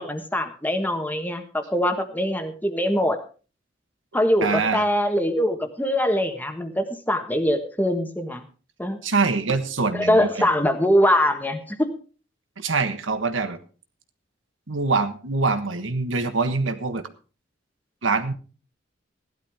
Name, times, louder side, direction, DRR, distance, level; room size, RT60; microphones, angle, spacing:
voice 1, 0.0-3.2 4.1-8.4 8.8-9.0 9.9-11.9, equal, 10° left, 6 dB, 1.5 m, -23 dB
voice 2, 4.4-4.8 9.0-10.5 12.6-13.6 14.7-17.1 18.0-18.3, right 4 dB, 90° right, 9 dB, 1.4 m, -24 dB
16.0 x 12.0 x 3.5 m, 0.36 s
head